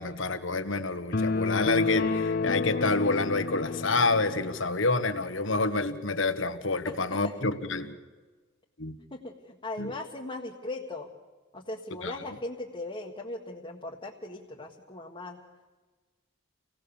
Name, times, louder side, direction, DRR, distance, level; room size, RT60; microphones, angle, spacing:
voice 1, 0.0-8.0 8.8-9.0 9.8-9.9 12.0-12.1, left 3 dB, 65° left, 9 dB, 1.4 m, -28 dB
sound 1, 1.1-4.7, left 3 dB, 50° left, 0.8 m, -29 dB
voice 2, 6.8-7.4 9.1-11.1 11.5-15.4, left 2 dB, 25° left, -1 dB, 1.6 m, -39 dB
27.0 x 18.0 x 7.1 m, 1.4 s
head